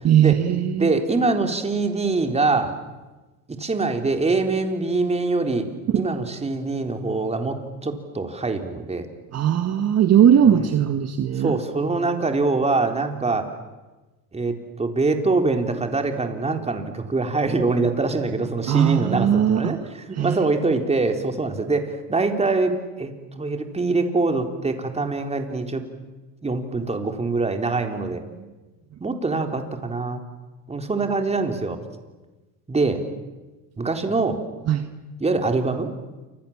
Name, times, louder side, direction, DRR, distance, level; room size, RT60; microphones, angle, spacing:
voice 1, 0.0-0.9 5.9-6.1 9.3-11.6 18.7-19.8 20.1-20.4 34.7-34.8, right 9 dB, 40° right, 8 dB, 1.7 m, -19 dB
voice 2, 0.8-2.7 3.6-5.7 5.9-7.6 7.8-9.0 10.5-10.7 11.4-13.5 14.3-25.8 26.4-28.2 29.0-30.2 30.7-31.8 32.7-33.0 33.8-34.4 35.2-35.9, right 3 dB, 15° right, 5 dB, 3.9 m, -24 dB
29.0 x 26.0 x 7.4 m, 1.2 s
supercardioid pair, 105°, 38 cm